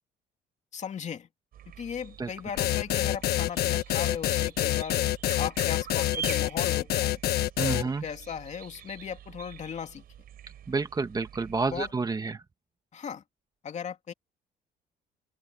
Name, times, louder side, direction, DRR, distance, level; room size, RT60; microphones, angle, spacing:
voice 1, 0.7-1.3 1.8-5.1 5.4-7.2 7.8-10.0 11.7-11.9 12.9-13.2 13.6-14.1, left 7 dB, 45° left, 2.6 m, -37 dB
sound 1, 1.5-11.9, right 9 dB, 60° right, 7.8 m, -45 dB
sound 2, 2.6-7.8, left 14 dB, 70° left, 1.4 m, -26 dB
voice 2, 7.6-8.0 10.7-12.4, right 4 dB, 25° right, 1.6 m, -29 dB
open air
cardioid pair, 110°, 17 cm